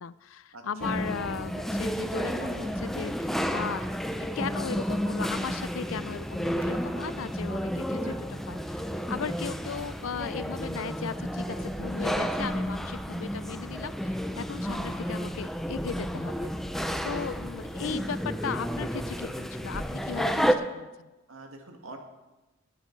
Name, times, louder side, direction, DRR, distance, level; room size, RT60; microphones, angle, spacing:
voice 1, 0.0-3.9 4.2-8.8 9.1-21.1, left 6 dB, 75° left, 17 dB, 0.5 m, -37 dB
sound 1, 0.8-20.5, equal, ahead, 0.6 m, -31 dB
sound 2, 6.6-7.4 7.9-20.1, equal, 25° right, 1.6 m, -48 dB
voice 2, 16.7-17.3 21.3-22.0, right 2 dB, 85° right, 3 dB, 2.0 m, -46 dB
17.0 x 9.5 x 4.7 m, 1.1 s
head